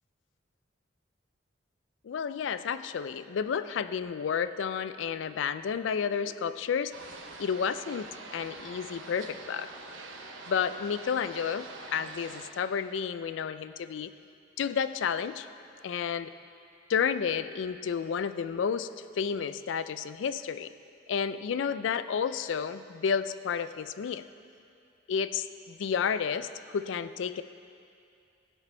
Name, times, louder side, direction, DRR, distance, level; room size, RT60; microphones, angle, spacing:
voice 1, 2.0-6.9 7.4-9.7 10.5-14.1 14.6-15.5 15.8-16.3 16.9-18.9 19.1-20.7 21.1-24.2 25.1-27.4, left 7 dB, 75° left, 13 dB, 0.3 m, -31 dB
sound 1, 6.9-12.5, right 3 dB, 90° right, 0.8 m, -45 dB
15.0 x 6.2 x 4.3 m, 2.5 s
head